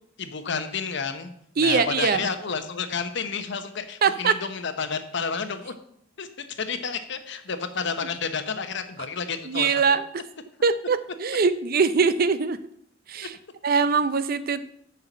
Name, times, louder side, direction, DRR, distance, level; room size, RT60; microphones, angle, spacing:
voice 1, 0.2-5.7 6.2-6.3 6.6-10.0, left 5 dB, 65° left, 9 dB, 0.9 m, -30 dB
voice 2, 1.6-2.3 4.0-4.3 9.5-10.0 10.6-12.6 13.1-13.3 13.6-14.6, right 5 dB, 50° right, 14 dB, 0.5 m, -22 dB
6.8 x 5.7 x 7.3 m, 0.69 s
head